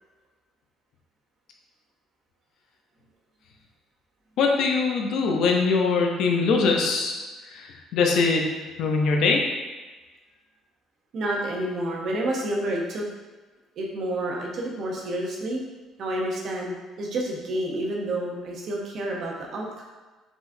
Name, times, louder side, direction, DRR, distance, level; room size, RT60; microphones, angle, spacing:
voice 1, 4.4-7.2 7.5-8.5 8.8-9.4, left 4 dB, 60° left, 1 dB, 0.7 m, -22 dB
voice 2, 11.1-13.0 13.8-15.6 16.0-19.8, right 1 dB, 45° right, -1 dB, 0.8 m, -29 dB
4.9 x 3.8 x 2.7 m, 1.2 s
cardioid pair, 170°, 0 cm